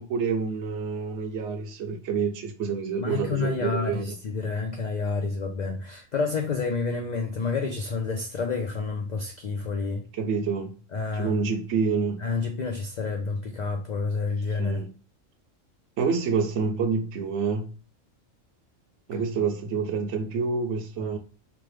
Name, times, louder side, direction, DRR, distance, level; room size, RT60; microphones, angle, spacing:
voice 1, 0.0-4.1 10.1-10.7 11.1-12.2 14.5-14.9 16.0-17.7 19.1-21.2, right 5 dB, 70° right, 0.8 m, -28 dB
voice 2, 3.0-10.0 10.9-11.3 12.2-14.8 21.0-21.1, left 4 dB, 85° left, 0.4 m, -29 dB
3.0 x 2.1 x 3.2 m
omnidirectional pair, 1.3 m